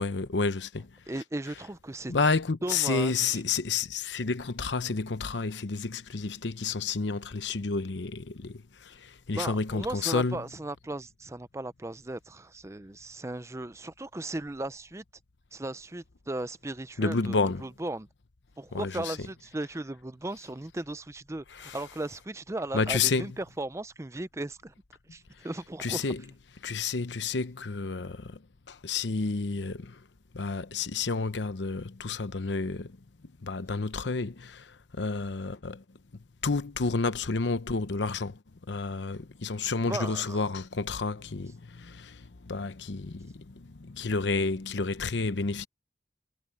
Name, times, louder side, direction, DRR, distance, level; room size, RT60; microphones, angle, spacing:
voice 1, 0.0-0.9 2.1-10.4 17.0-17.6 18.7-19.2 21.6-21.8 22.7-23.3 25.8-26.2 26.6-28.4 28.7-30.0 30.3-32.9 33.4-34.7 35.0-35.8 36.4-38.4 38.7-45.7, left 4 dB, 90° left, 0.9 m, -30 dB
voice 2, 1.1-2.1 2.6-3.4 9.3-15.0 15.5-18.1 18.6-24.7 25.1-26.1 39.9-40.5, right 2 dB, 15° right, 0.6 m, -36 dB
head